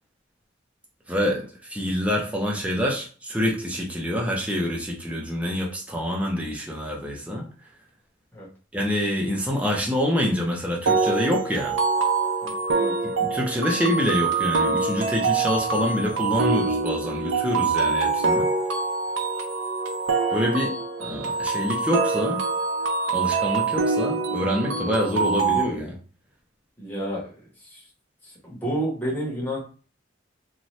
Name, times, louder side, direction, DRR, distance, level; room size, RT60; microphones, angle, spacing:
voice 1, 1.1-7.5 8.7-11.8 13.0-18.5 20.3-20.7 21.0-22.4 23.1-26.0, equal, 5° right, -2 dB, 0.6 m, -26 dB
sound 1, 10.9-25.6, right 4 dB, 75° right, 0.5 m, -25 dB
voice 2, 12.4-13.0 26.8-27.3 27.6-27.8 28.2-29.6, right 1 dB, 10° left, -6 dB, 1.0 m, -30 dB
2.7 x 2.2 x 3.1 m, 0.39 s
head